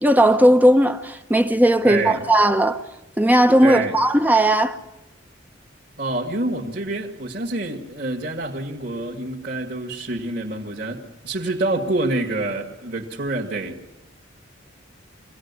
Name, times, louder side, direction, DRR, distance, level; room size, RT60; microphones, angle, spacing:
voice 1, 0.0-2.8 3.2-4.8, right 1 dB, 10° right, 0.8 m, -17 dB
voice 2, 1.8-2.2 3.6-4.0 6.0-13.8, right 2 dB, 45° right, 2.3 m, -27 dB
24.5 x 18.0 x 9.7 m
head